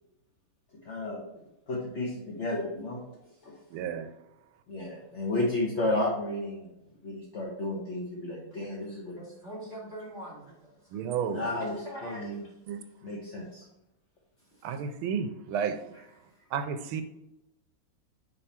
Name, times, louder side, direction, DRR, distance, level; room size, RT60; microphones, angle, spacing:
voice 1, 0.8-1.2 1.7-3.0 3.4-3.6 4.7-6.7 7.0-9.1 11.3-11.7 12.0-12.4 13.0-13.6, left 1 dB, 45° left, -4 dB, 1.0 m, -32 dB
voice 2, 3.7-4.1 10.9-11.5 12.7-12.8 14.6-15.8 16.5-17.0, right 7 dB, 80° right, 8 dB, 1.4 m, -32 dB
voice 3, 8.5-11.0 11.6-12.5 13.4-13.5 14.4-14.7 15.9-16.5, right 1 dB, 25° left, -6 dB, 2.6 m, -45 dB
5.3 x 4.8 x 4.3 m, 0.88 s
omnidirectional pair, 2.4 m